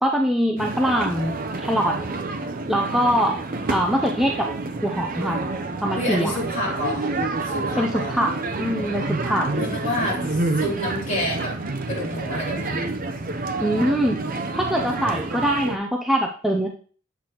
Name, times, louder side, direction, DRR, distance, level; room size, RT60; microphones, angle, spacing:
voice 1, 0.0-2.0 2.7-3.4 3.7-4.5 4.8-5.4 5.8-6.3 7.8-9.5 13.6-14.2 14.5-16.7, equal, ahead, 1 dB, 0.5 m, -23 dB
sound 1, 0.6-15.8, right 3 dB, 45° right, 0.6 m, -28 dB
voice 2, 5.9-7.1 7.4-8.2 9.6-11.6 11.9-12.9, left 1 dB, 40° left, -5 dB, 3.1 m, -28 dB
7.9 x 5.9 x 2.9 m, 0.42 s
head